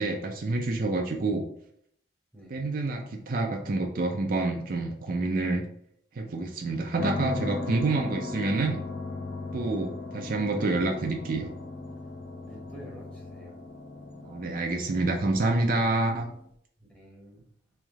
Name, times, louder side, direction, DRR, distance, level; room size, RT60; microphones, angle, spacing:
voice 1, 0.0-1.5 2.5-5.6 6.1-8.8 9.5-11.5 14.2-16.3, right 2 dB, 45° right, 3 dB, 0.4 m, -28 dB
sound 1, 7.0-16.4, left 3 dB, 65° left, 0.6 m, -37 dB
voice 2, 12.5-13.6 16.9-17.4, right 1 dB, 5° left, -2 dB, 0.9 m, -49 dB
3.2 x 3.1 x 3.5 m, 0.68 s
head